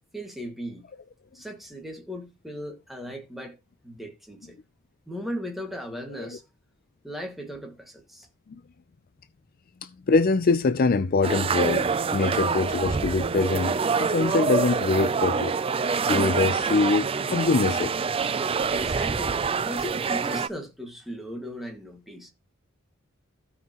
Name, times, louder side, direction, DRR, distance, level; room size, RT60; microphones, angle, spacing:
voice 1, 0.1-0.9 1.3-3.6 3.8-4.6 5.1-6.4 7.0-8.3 18.7-22.3, equal, ahead, 1.9 m, -37 dB
voice 2, 9.8-15.5 16.1-17.9, left 3 dB, 45° left, 0.4 m, -24 dB
sound 1, 11.2-20.5, right 5 dB, 25° right, 0.4 m, -26 dB
15.5 x 5.6 x 3.0 m
head